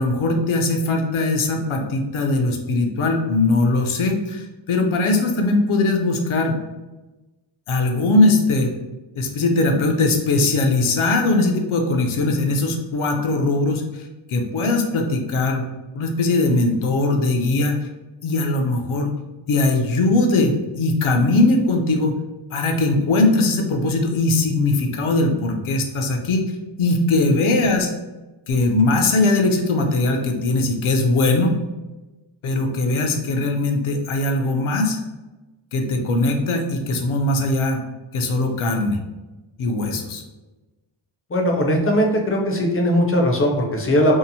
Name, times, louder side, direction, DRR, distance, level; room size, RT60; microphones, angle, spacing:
voice 1, 0.0-6.6 7.7-8.7 9.2-15.6 15.9-17.9 18.2-19.2 19.5-22.1 22.5-26.4 26.8-27.9 28.5-31.5 32.4-35.0 35.7-37.8 38.1-39.0 39.6-40.2, left 2 dB, 80° left, 3 dB, 0.5 m, -20 dB
voice 2, 41.3-44.2, equal, 30° left, 1 dB, 0.5 m, -19 dB
2.7 x 2.0 x 2.6 m, 1.1 s
wide cardioid pair, 85°, 49 cm